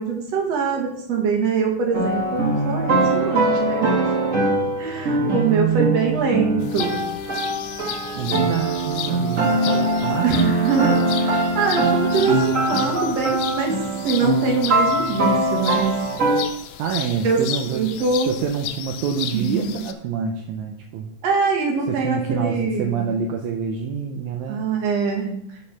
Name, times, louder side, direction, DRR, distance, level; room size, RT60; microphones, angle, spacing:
voice 1, 0.0-4.1 4.8-7.0 10.2-13.8 14.0-15.9 17.2-17.4 17.7-18.3 19.3-19.8 21.2-23.1 24.5-25.4, right 5 dB, 60° right, 1 dB, 2.7 m, -23 dB
sound 1, 1.9-16.4, right 2 dB, 35° right, 1.3 m, -22 dB
voice 2, 5.2-6.9 8.2-10.4 16.8-17.9 18.3-21.1 21.9-24.6, right 7 dB, 80° right, 3 dB, 2.1 m, -26 dB
sound 2, 6.6-19.9, left 10 dB, 80° left, 2.0 m, -34 dB
9.2 x 5.3 x 5.5 m, 0.76 s
omnidirectional pair, 3.4 m